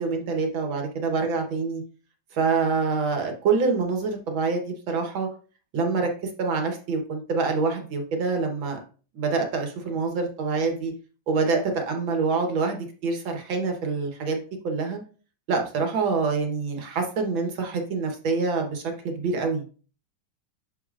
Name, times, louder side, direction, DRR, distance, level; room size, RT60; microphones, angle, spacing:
voice 1, 0.0-1.8 2.3-5.3 5.7-8.8 9.1-10.9 11.3-15.0 15.5-19.6, right 4 dB, 85° right, 4 dB, 2.1 m, -26 dB
10.5 x 4.2 x 2.5 m, 0.39 s
omnidirectional pair, 2.1 m